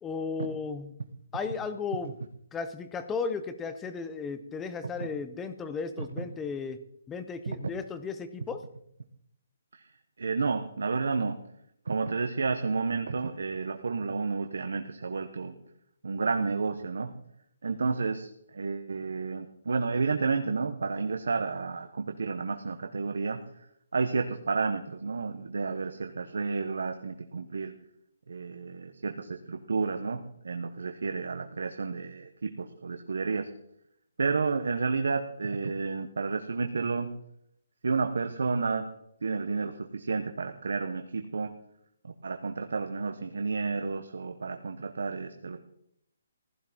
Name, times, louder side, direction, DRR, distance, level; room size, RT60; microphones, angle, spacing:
voice 1, 0.0-0.9 1.3-2.1 2.5-6.8 7.1-8.6, left 5 dB, 5° left, 10 dB, 0.7 m, -35 dB
voice 2, 10.2-11.4 11.8-15.5 16.0-17.1 17.6-23.7 23.9-27.7 28.3-33.5 34.2-37.1 37.8-38.9 39.2-41.5 42.0-45.6, right 4 dB, 80° right, 7 dB, 1.2 m, -31 dB
16.0 x 13.0 x 4.4 m, 0.74 s
hypercardioid pair, 175°, 0 cm